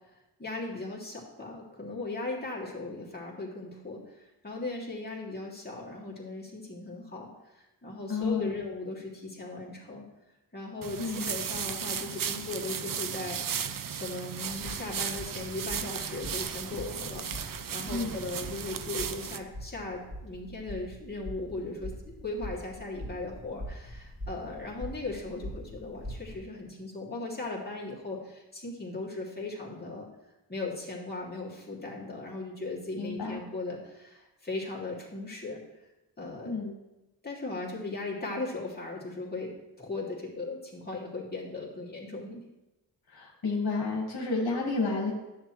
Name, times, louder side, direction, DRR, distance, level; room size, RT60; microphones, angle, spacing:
voice 1, 0.4-10.0 10.5-13.4 13.9-17.3 17.7-30.1 30.5-35.6 36.2-36.6 37.2-39.5 39.8-42.4, left 2 dB, 20° left, -4 dB, 2.4 m, -38 dB
voice 2, 8.1-8.6 11.0-11.2 17.9-18.1 33.0-33.4 36.4-36.7 43.1-45.1, left 3 dB, 60° left, -2 dB, 1.7 m, -31 dB
sound 1, 10.8-19.4, right 7 dB, 50° right, 0.6 m, -35 dB
sound 2, 14.5-26.4, equal, 15° right, 2.8 m, -43 dB
9.9 x 7.6 x 3.1 m, 0.99 s
cardioid pair, 55°, 43 cm